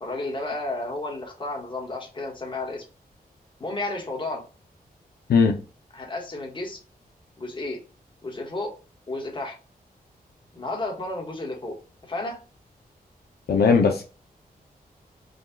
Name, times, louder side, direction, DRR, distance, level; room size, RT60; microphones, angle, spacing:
voice 1, 0.0-2.8 3.6-4.5 5.9-6.8 7.4-7.8 8.2-8.8 9.1-9.6 10.5-11.8 12.1-12.4, left 2 dB, 30° left, 1.4 m, -32 dB
voice 2, 13.5-14.0, left 5 dB, 85° left, 0.7 m, -18 dB
5.1 x 2.4 x 3.7 m
wide cardioid pair, 130°, 16 cm